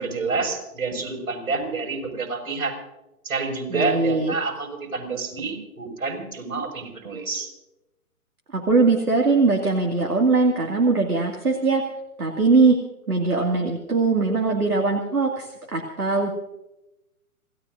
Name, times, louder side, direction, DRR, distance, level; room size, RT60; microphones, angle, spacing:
voice 1, 0.0-2.8 3.2-7.5, right 4 dB, 65° right, 1 dB, 6.2 m, -28 dB
voice 2, 3.7-4.3 8.5-11.8 12.2-12.7 13.1-16.3, right 3 dB, 85° right, 1 dB, 2.5 m, -21 dB
27.5 x 17.5 x 2.7 m, 0.96 s
figure-of-eight pair, 125°, 44 cm